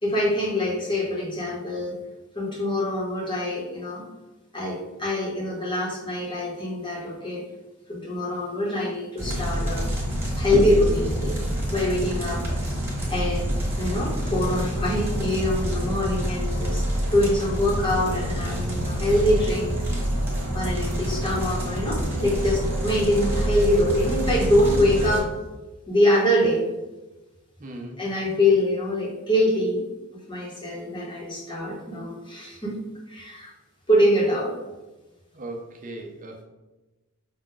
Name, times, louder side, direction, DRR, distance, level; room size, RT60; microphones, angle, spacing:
voice 1, 0.0-2.0 2.3-4.0 4.5-7.4 7.9-9.9 10.3-11.4 11.7-12.4 13.1-13.5 13.8-19.7 20.5-25.3 25.9-26.7 28.0-29.8 30.3-32.8 33.1-33.5 33.9-34.5, left 1 dB, 20° left, -3 dB, 1.0 m, -24 dB
sound 1, 9.2-25.2, equal, 10° right, 1.2 m, -27 dB
voice 2, 27.6-28.0 35.3-36.4, right 1 dB, 35° right, 2 dB, 0.6 m, -37 dB
5.5 x 2.4 x 3.8 m, 1.1 s
head